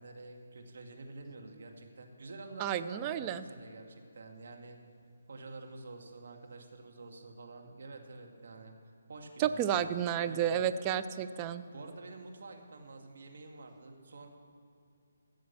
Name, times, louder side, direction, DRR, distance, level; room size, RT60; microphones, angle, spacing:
voice 1, 0.0-4.8 5.3-9.9 10.2-10.6 11.7-14.3, right 3 dB, 60° right, 3 dB, 2.1 m, -48 dB
voice 2, 2.6-3.4 9.4-11.6, right 9 dB, 20° right, 11 dB, 0.5 m, -31 dB
15.0 x 7.4 x 7.3 m, 2.6 s
figure-of-eight pair, 155°, 0 cm